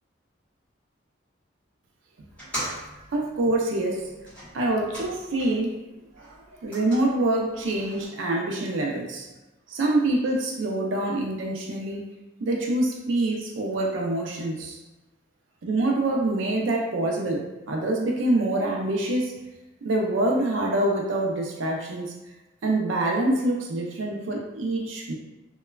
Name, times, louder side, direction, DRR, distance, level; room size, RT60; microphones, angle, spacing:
sound 1, 2.3-5.7 6.0-8.0, equal, 5° left, 1.1 m, -40 dB
voice 1, 3.1-4.1 4.5-5.7 6.2-9.3 9.7-12.0 12.4-14.8 15.6-19.3 19.8-22.1 22.6-25.1, right 2 dB, 85° right, 0 dB, 0.4 m, -25 dB
3.0 x 2.2 x 2.2 m, 1.1 s
head